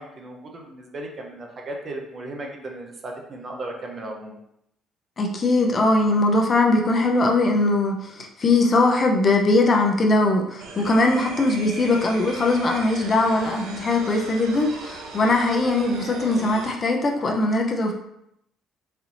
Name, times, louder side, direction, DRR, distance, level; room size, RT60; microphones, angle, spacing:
voice 1, 0.0-4.4, right 1 dB, 45° right, 1 dB, 0.8 m, -36 dB
voice 2, 5.2-17.9, left 2 dB, 45° left, 2 dB, 0.7 m, -20 dB
sound 1, 10.6-16.7, right 3 dB, 75° right, 0.5 m, -38 dB
4.3 x 2.7 x 2.6 m, 0.78 s
supercardioid pair, 65°, 0 cm